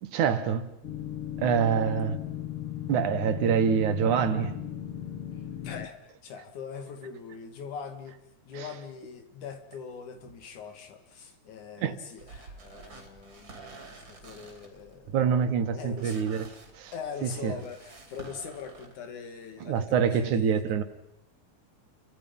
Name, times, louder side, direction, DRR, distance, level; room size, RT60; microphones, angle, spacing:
voice 1, 0.0-0.7 1.4-2.2 2.9-4.6 11.8-12.0 15.1-16.5 16.7-16.9 17.2-17.5 19.6-20.8, right 7 dB, 80° right, 2.9 m, -25 dB
sound 1, 0.8-5.9, left 11 dB, 55° left, 1.9 m, -36 dB
voice 2, 5.3-8.2 8.5-15.2 15.7-16.2 16.9-20.6, left 6 dB, 80° left, 3.7 m, -42 dB
sound 2, 12.2-18.9, right 3 dB, 40° right, 4.0 m, -49 dB
30.0 x 24.0 x 5.5 m
omnidirectional pair, 3.4 m